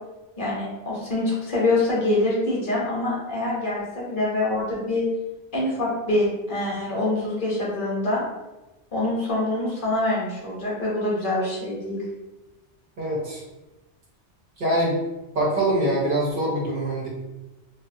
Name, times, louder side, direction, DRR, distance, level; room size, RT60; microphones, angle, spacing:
voice 1, 0.4-5.0 5.5-8.2 8.9-12.0, left 2 dB, 55° left, -5 dB, 0.8 m, -25 dB
voice 2, 13.0-13.4 14.6-15.0 15.3-17.1, right 1 dB, 60° right, -4 dB, 0.8 m, -24 dB
2.6 x 2.0 x 2.5 m, 1.0 s
omnidirectional pair, 1.2 m